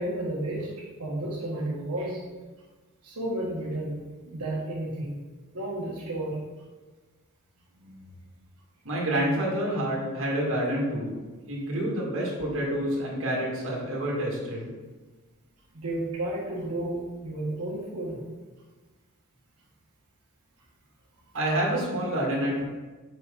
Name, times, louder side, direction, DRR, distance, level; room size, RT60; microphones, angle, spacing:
voice 1, 0.0-2.2 3.0-5.2 5.5-6.4 7.7-8.1 15.7-18.2, right 1 dB, 90° right, -6 dB, 1.5 m, -32 dB
voice 2, 8.8-11.1 11.4-14.7 21.3-22.6, right 1 dB, 60° right, -3 dB, 2.0 m, -28 dB
7.4 x 5.6 x 3.8 m, 1.3 s
head